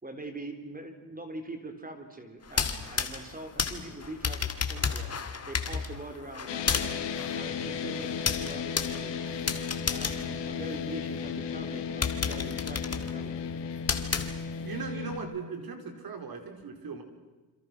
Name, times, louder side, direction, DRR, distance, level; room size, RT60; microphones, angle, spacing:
voice 1, 0.0-5.1 5.5-9.3 9.9-13.5, right 2 dB, 20° right, 6 dB, 4.0 m, -43 dB
sound 1, 2.4-11.2 11.6-11.7 12.0-14.8, left 5 dB, 35° left, 2.6 m, -33 dB
sound 2, 6.5-15.2, left 6 dB, 80° left, 3.2 m, -35 dB
voice 2, 14.6-17.0, right 4 dB, 55° right, 6 dB, 4.9 m, -38 dB
27.5 x 27.5 x 6.2 m, 1.2 s
cardioid pair, 95°, 43 cm